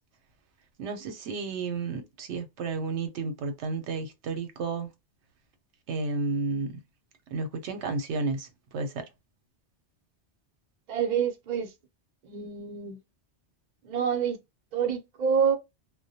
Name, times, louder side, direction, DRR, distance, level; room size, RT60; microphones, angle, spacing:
voice 1, 0.8-4.9 5.9-6.8 7.3-9.1, right 3 dB, 80° right, 0.9 m, -32 dB
voice 2, 10.9-11.7 12.2-13.0 13.8-14.4 14.7-15.6, right 7 dB, 50° right, 0.6 m, -27 dB
2.2 x 2.1 x 2.6 m
omnidirectional pair, 1.2 m